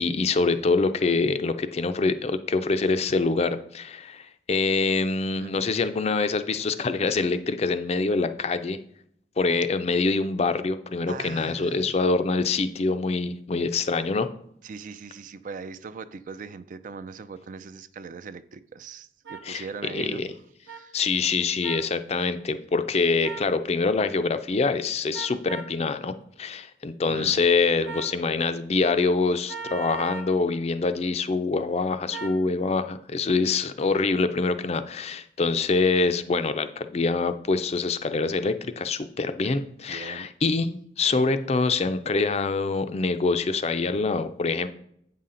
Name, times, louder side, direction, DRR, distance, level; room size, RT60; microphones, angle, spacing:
voice 1, 0.0-8.8 9.4-14.3 19.4-20.3 20.9-26.1 26.4-44.7, left 4 dB, 35° left, 11 dB, 0.4 m, -25 dB
voice 2, 5.4-5.9 11.1-11.9 14.6-20.3 20.7-21.0 27.1-27.4 39.9-40.3, right 5 dB, 45° right, 13 dB, 0.4 m, -40 dB
sound 1, 19.2-19.4 20.7-20.8 21.6-21.9 23.2-23.5 25.1-25.7 27.8-28.2 29.5-30.3 32.1-32.4, right 4 dB, 80° right, 0.8 m, -37 dB
8.2 x 5.6 x 3.8 m, 0.70 s
head